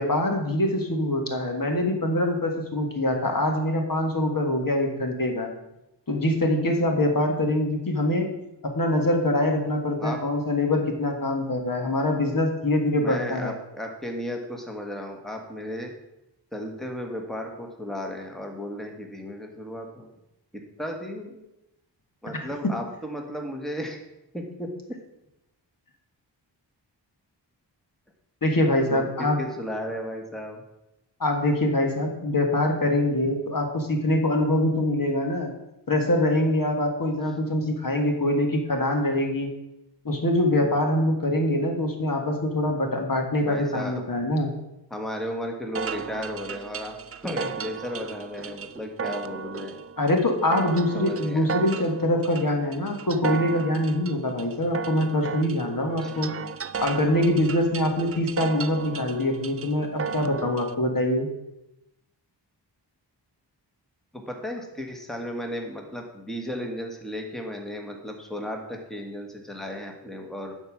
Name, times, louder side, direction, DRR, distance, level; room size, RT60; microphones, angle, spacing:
voice 1, 0.0-5.5 6.1-8.3 8.7-13.5 28.4-29.4 31.2-35.5 35.9-39.5 40.0-44.5 50.0-56.3 56.8-61.3, left 1 dB, 50° left, 3 dB, 1.7 m, -24 dB
voice 2, 13.0-15.9 16.5-20.1 20.5-21.4 22.2-24.0 24.3-25.0 28.9-30.6 43.4-44.0 44.9-46.9 47.2-49.8 50.9-51.5 56.0-56.2 64.1-70.5, left 1 dB, ahead, 2 dB, 1.5 m, -34 dB
sound 1, 45.7-60.7, right 6 dB, 35° right, 0.4 m, -35 dB
11.0 x 4.5 x 6.1 m, 0.90 s
wide cardioid pair, 70°, 43 cm